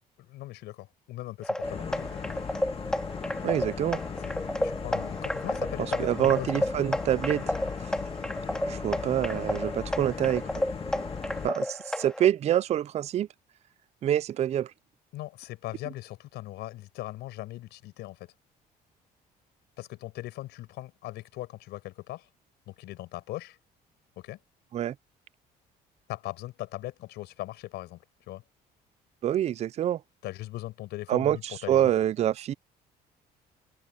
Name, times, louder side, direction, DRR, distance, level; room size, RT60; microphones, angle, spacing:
voice 1, 0.2-2.2 4.2-6.6 15.1-18.3 19.8-22.3 22.7-23.6 24.2-24.4 26.1-28.4 30.2-31.9, left 16 dB, 85° left, 5.8 m, -39 dB
sound 1, 1.4-12.3, left 1 dB, 5° left, 1.9 m, -32 dB
sound 2, 1.6-11.5, left 6 dB, 35° left, 2.3 m, -38 dB
voice 2, 3.4-4.0 6.0-7.4 8.6-10.4 11.4-13.3 14.0-14.7 24.7-24.9 29.2-30.0 31.1-32.5, right 11 dB, 40° right, 0.4 m, -26 dB
cardioid pair, 110°, 17 cm